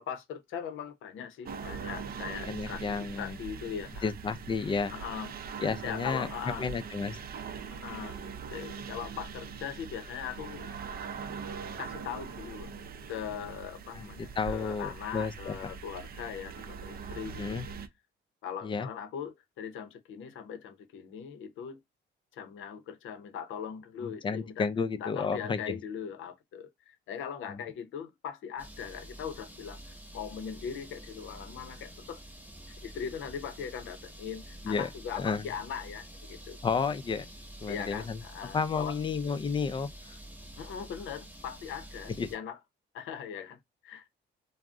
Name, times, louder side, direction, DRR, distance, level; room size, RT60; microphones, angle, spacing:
voice 1, 0.0-4.1 4.9-5.3 5.8-6.7 7.7-8.2 8.5-10.7 11.8-12.8 13.1-17.6 18.4-21.8 22.3-24.7 24.9-32.2 32.8-36.6 37.7-39.0 40.6-42.6 42.9-44.1, left 8 dB, 80° left, 0.6 m, -40 dB
sound 1, 1.5-17.9, right 6 dB, 50° right, 0.4 m, -42 dB
voice 2, 2.5-3.4 4.0-4.9 5.6-6.3 6.6-7.2 13.9-15.6 17.4-17.7 18.6-18.9 24.0-25.7 27.5-27.6 34.6-34.9 35.2-35.5 36.6-37.3 37.6-38.2 38.5-39.9 42.2-42.3, left 5 dB, 25° left, 0.4 m, -32 dB
sound 2, 28.6-42.4, right 1 dB, 10° right, 0.9 m, -48 dB
2.4 x 2.0 x 3.5 m
cardioid pair, 90°, 20 cm